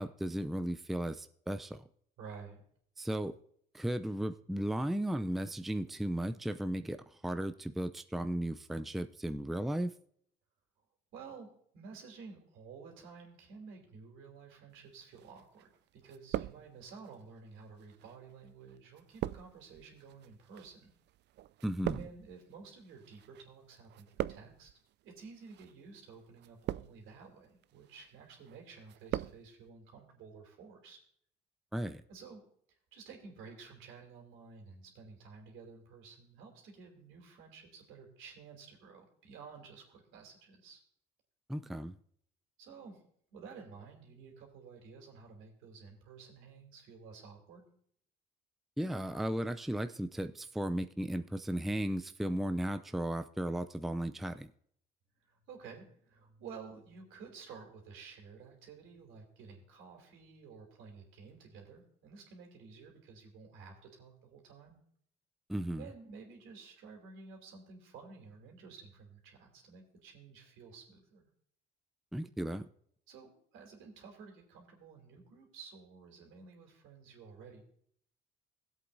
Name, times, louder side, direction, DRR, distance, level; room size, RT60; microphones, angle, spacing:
voice 1, 0.0-1.8 3.0-3.4 3.7-9.9 21.6-22.0 31.7-32.0 41.5-42.0 48.8-54.5 65.5-65.9 72.1-72.7, right 1 dB, ahead, 9 dB, 0.5 m, -35 dB
voice 2, 2.2-2.6 11.1-20.9 22.0-24.7 25.0-31.0 32.1-32.4 32.7-40.8 42.6-43.0 43.3-47.7 55.2-64.8 65.8-71.3 73.1-77.6, right 5 dB, 75° right, 2 dB, 3.0 m, -52 dB
sound 1, 15.2-15.8 16.0-17.1 17.8-23.4 23.7-24.7 25.4-25.7 26.4-27.2 27.6-28.1 28.5-29.4 29.7-29.8, right 13 dB, 60° right, 0.4 m, -40 dB
17.0 x 8.0 x 2.7 m, 0.64 s
supercardioid pair, 70°, 20 cm